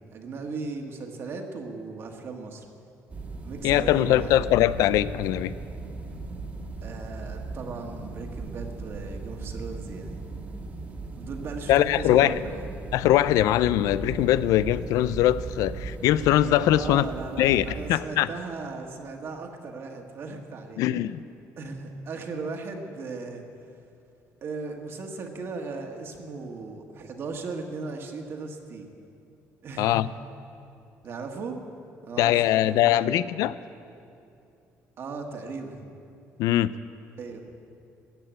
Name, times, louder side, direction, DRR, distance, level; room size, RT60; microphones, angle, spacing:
voice 1, 0.1-2.6 3.4-4.4 6.8-10.2 11.1-12.6 16.7-20.8 21.6-23.4 24.4-28.9 29.6-30.0 31.0-31.6 32.0-33.1 35.0-35.8 37.2-37.4, right 4 dB, 45° right, 3 dB, 1.5 m, -37 dB
sound 1, 3.1-18.0, right 3 dB, 25° right, 1.6 m, -37 dB
voice 2, 3.6-5.5 11.7-12.4 12.9-17.1 17.4-18.3 20.8-21.2 29.8-30.1 32.2-33.6 36.4-36.7, left 13 dB, 85° left, 16 dB, 0.4 m, -22 dB
14.5 x 8.8 x 8.9 m, 2.6 s
cardioid pair, 150°, 6 cm